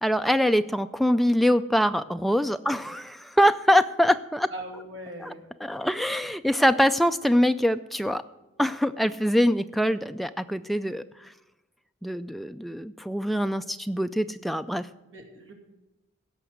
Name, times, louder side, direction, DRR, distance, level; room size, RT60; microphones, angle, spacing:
voice 1, 0.0-4.5 5.2-5.3 5.6-8.2 8.6-11.3 12.0-14.9, equal, ahead, 9 dB, 0.3 m, -24 dB
voice 2, 4.5-5.4 5.8-5.9 15.1-15.5, right 1 dB, 70° right, 2 dB, 2.6 m, -40 dB
16.0 x 6.1 x 8.0 m, 1.0 s
head